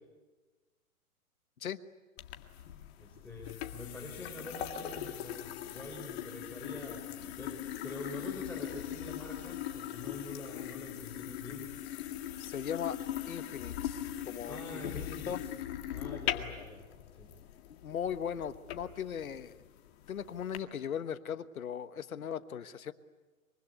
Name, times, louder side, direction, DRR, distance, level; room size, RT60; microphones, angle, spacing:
sound 1, 2.2-20.6, left 11 dB, 45° left, 2.1 m, -41 dB
voice 1, 3.0-11.7 14.4-15.5 15.9-17.3, left 2 dB, 5° left, -3 dB, 4.1 m, -46 dB
voice 2, 12.4-13.0 13.3-15.4 17.7-19.6 20.1-22.9, left 8 dB, 75° left, 13 dB, 1.4 m, -38 dB
24.5 x 24.0 x 9.4 m, 1.3 s
hypercardioid pair, 125°, 42 cm